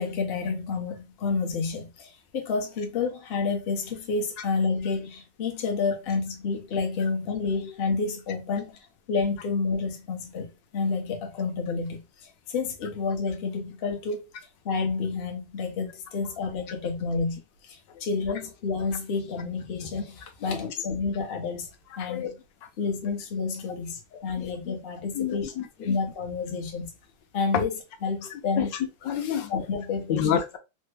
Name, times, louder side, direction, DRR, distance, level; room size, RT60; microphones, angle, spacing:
voice 1, 0.0-8.8 9.1-10.5 10.7-14.2 14.6-21.7 22.0-22.4 22.8-25.5 25.8-26.9 27.3-27.7 28.0-28.7 29.5-30.4, left 4 dB, 50° left, 0.7 m, -29 dB
voice 2, 22.0-22.3 24.1-24.5 25.1-25.7 27.5-27.6 28.3-29.5 30.1-30.6, left 9 dB, 75° left, 1.2 m, -29 dB
3.3 x 2.1 x 3.2 m
omnidirectional pair, 2.0 m